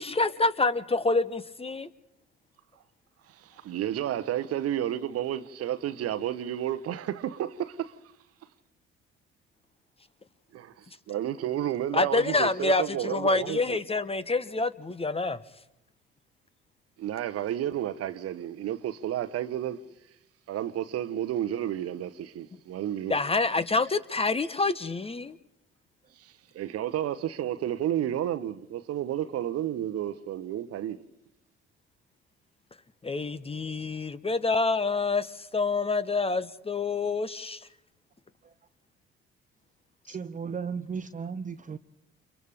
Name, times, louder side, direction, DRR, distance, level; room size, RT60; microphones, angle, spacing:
voice 1, 0.0-1.9 11.9-15.4 23.1-25.4 33.0-37.7, left 3 dB, 20° left, 1.0 m, -27 dB
voice 2, 3.4-8.0 10.5-13.8 17.0-19.8 20.5-23.1 26.2-31.0, right 11 dB, 50° right, 1.0 m, -31 dB
voice 3, 40.1-41.8, right 6 dB, 25° right, 0.7 m, -35 dB
29.5 x 27.0 x 3.6 m
figure-of-eight pair, 50°, 30 cm